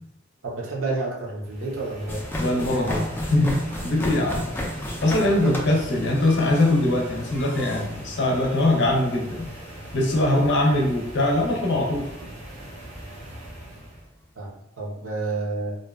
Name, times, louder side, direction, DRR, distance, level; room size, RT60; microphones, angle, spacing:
voice 1, 0.4-2.2 5.4-5.5 14.4-15.8, right 3 dB, 75° right, -2 dB, 0.7 m, -30 dB
sound 1, 1.4-14.1, right 1 dB, 35° right, 0.6 m, -41 dB
sound 2, 2.1-14.1, left 1 dB, 10° left, 0.3 m, -35 dB
voice 2, 2.4-4.5 4.8-9.5 9.9-12.1, left 1 dB, 60° left, 0 dB, 0.5 m, -22 dB
2.5 x 2.2 x 2.3 m, 0.84 s
head